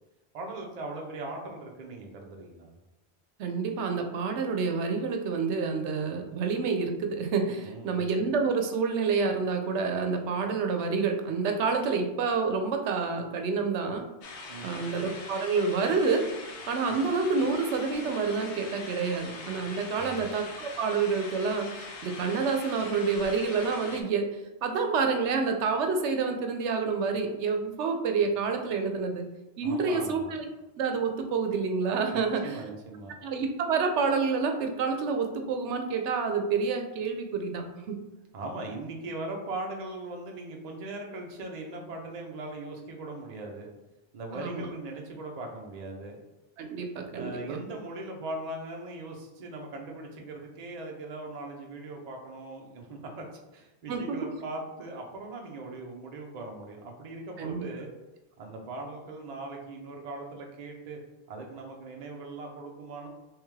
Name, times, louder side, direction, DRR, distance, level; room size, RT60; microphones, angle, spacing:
voice 1, 0.3-2.7 6.3-6.4 7.6-8.1 14.5-14.9 16.9-17.0 19.6-20.2 29.6-30.4 32.1-33.1 38.3-43.7 44.1-46.1 47.1-53.2 53.5-57.9 58.4-61.0 61.3-63.1, right 2 dB, 45° right, 1 dB, 0.6 m, -40 dB
voice 2, 3.4-14.0 14.6-16.3 16.7-24.3 24.6-29.3 29.6-30.5 30.8-32.5 33.2-38.0 44.3-44.7 46.6-47.6 53.9-54.4 57.4-57.7, right 4 dB, 90° right, 5 dB, 0.9 m, -28 dB
sound 1, 14.2-24.0, left 3 dB, 85° left, 0.9 m, -42 dB
3.5 x 3.2 x 3.2 m, 1.0 s
omnidirectional pair, 1.1 m